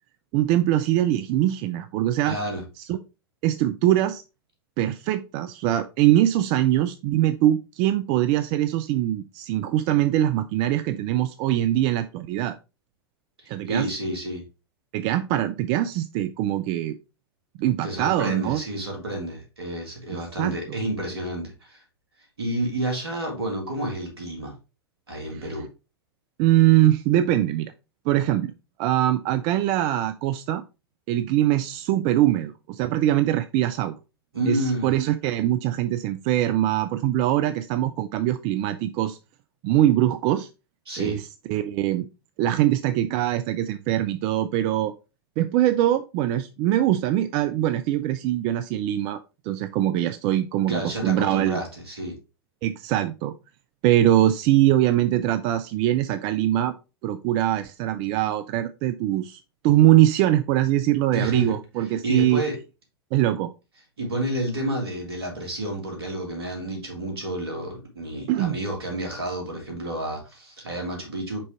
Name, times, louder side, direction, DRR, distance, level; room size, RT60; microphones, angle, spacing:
voice 1, 0.3-2.4 2.8-3.0 3.4-4.2 4.8-12.6 13.5-13.9 14.9-17.0 17.6-18.6 20.4-20.8 25.3-25.4 26.4-27.7 28.1-28.5 28.8-30.6 31.1-33.9 34.5-39.2 39.6-40.5 41.0-42.1 42.4-44.9 45.4-51.6 52.6-53.3 53.8-56.7 57.0-62.4 63.1-63.5 68.3-68.6, right 13 dB, 40° right, 11 dB, 0.5 m, -22 dB
voice 2, 2.2-2.6 13.4-14.4 17.8-21.8 22.4-24.6 25.1-25.7 34.3-34.9 40.9-41.2 50.7-52.2 61.1-61.6 62.0-62.6 64.0-71.4, right 1 dB, 75° right, 1 dB, 3.0 m, -30 dB
5.4 x 5.3 x 3.4 m, 0.28 s
figure-of-eight pair, 100°, 13 cm